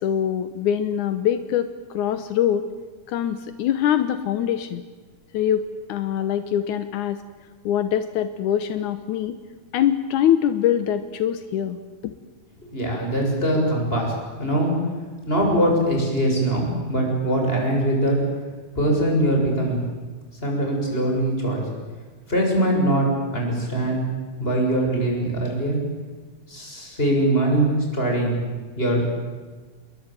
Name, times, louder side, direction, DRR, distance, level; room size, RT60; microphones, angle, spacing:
voice 1, 0.0-2.7 3.1-4.9 5.3-5.6 5.9-7.2 7.7-9.4 9.7-12.1, left 10 dB, 80° left, 11 dB, 2.5 m, -23 dB
voice 2, 12.7-14.8 15.3-18.2 18.8-19.8 20.4-21.6 22.3-24.0 24.4-25.8 26.5-28.4 28.8-29.1, right 1 dB, 15° left, 0 dB, 7.6 m, -22 dB
28.0 x 22.0 x 9.1 m, 1.4 s
omnidirectional pair, 3.5 m